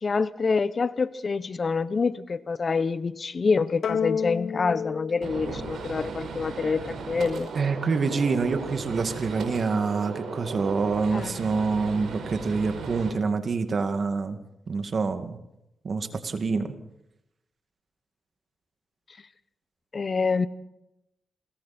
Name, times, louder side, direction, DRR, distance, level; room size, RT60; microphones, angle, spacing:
voice 1, 0.0-7.5 11.1-11.5 19.9-20.5, left 4 dB, 45° left, 16 dB, 0.9 m, -26 dB
sound 1, 3.8-6.4, left 7 dB, 75° left, 0.9 m, -31 dB
Gunshot gunfire, 5.2-13.1, right 4 dB, 75° right, 5.2 m, -36 dB
voice 2, 7.6-14.4 14.7-15.4 15.8-16.7, right 4 dB, 55° right, 8 dB, 2.3 m, -26 dB
27.5 x 22.0 x 4.4 m, 0.87 s
cardioid pair, 55°, 0 cm